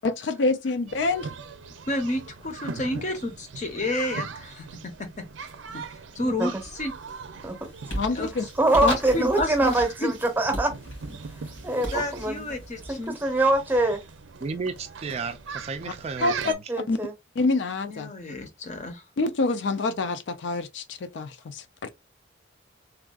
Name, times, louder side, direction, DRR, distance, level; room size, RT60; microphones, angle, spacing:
voice 1, 0.0-1.3 7.9-8.4 16.2-16.3 16.9-17.0 17.4-18.1 19.2-21.9, left 3 dB, 75° left, 0.4 m, -26 dB
sound 1, 0.9-16.5, right 5 dB, 90° right, 0.5 m, -40 dB
voice 2, 1.9-4.6 5.7-5.8 6.2-6.9 8.1-8.5 8.8-9.8 10.0-10.1 11.9-13.2 17.8-19.0, left 1 dB, 40° left, 0.7 m, -30 dB
voice 3, 6.2-6.6 7.4-7.6 8.5-10.7 11.6-12.5 12.9-14.0 16.7-17.1, right 2 dB, 10° right, 0.7 m, -24 dB
sound 2, 6.6-7.0 7.4-14.0, equal, 90° left, 1.8 m, -38 dB
voice 4, 14.4-16.7, right 4 dB, 35° right, 0.3 m, -33 dB
3.5 x 2.4 x 2.3 m
head